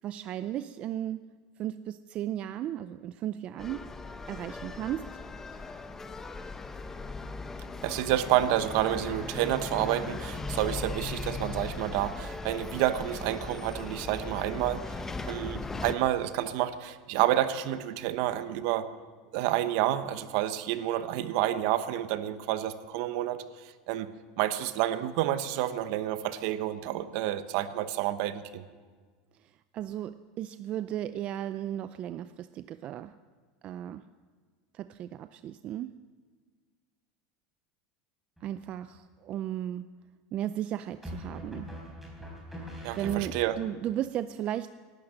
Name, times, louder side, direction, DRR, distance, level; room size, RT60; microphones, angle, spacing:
voice 1, 0.0-1.2 1.6-3.9 4.3-5.2 5.5-5.6 29.4-33.2 33.6-34.1 34.7-36.0 38.4-39.9 40.3-41.8 42.5-44.7, right 12 dB, 40° right, 12 dB, 0.4 m, -35 dB
sound 1, 3.6-15.9, left 3 dB, 15° left, 0.9 m, -38 dB
voice 2, 7.8-18.9 19.3-24.1 24.4-28.6 42.8-43.6, right 13 dB, 65° right, 12 dB, 1.0 m, -29 dB
sound 2, 38.4-39.0 41.0-43.7, equal, 5° right, 4.3 m, -42 dB
18.5 x 12.0 x 6.5 m, 1.5 s
supercardioid pair, 135°, 3 cm